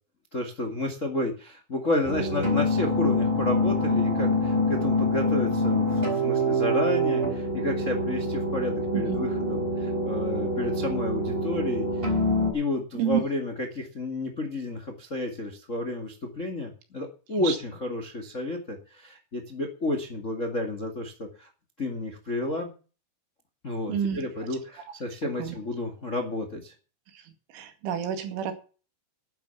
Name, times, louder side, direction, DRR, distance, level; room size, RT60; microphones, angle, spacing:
voice 1, 0.3-11.9 12.5-21.5 21.8-22.7 23.6-26.7, left 2 dB, 55° left, 5 dB, 0.8 m, -31 dB
sound 1, 2.0-12.5, left 1 dB, 15° right, 3.6 m, -25 dB
voice 2, 23.9-24.2 25.4-25.6 27.1-27.2 27.5-28.5, right 9 dB, 80° right, 7 dB, 4.6 m, -28 dB
11.5 x 10.0 x 7.1 m, 0.37 s
omnidirectional pair, 5.5 m